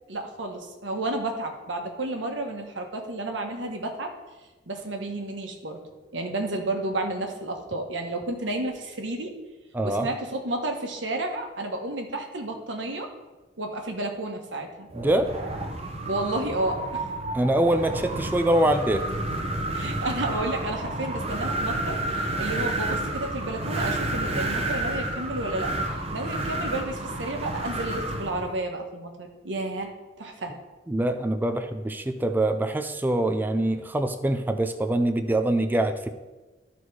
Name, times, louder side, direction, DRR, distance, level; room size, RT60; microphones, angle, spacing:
voice 1, 0.1-4.1 4.7-5.8 6.1-9.3 9.8-13.1 13.6-14.9 16.1-17.0 19.7-29.9 30.2-30.5, right 2 dB, 90° right, 3 dB, 1.3 m, -31 dB
voice 2, 9.7-10.1 14.9-15.3 17.3-19.1 30.9-36.1, right 1 dB, 10° right, 7 dB, 0.4 m, -24 dB
Wind, 14.9-28.5, right 1 dB, 35° right, 1.0 m, -30 dB
12.5 x 4.2 x 4.7 m, 1.2 s
head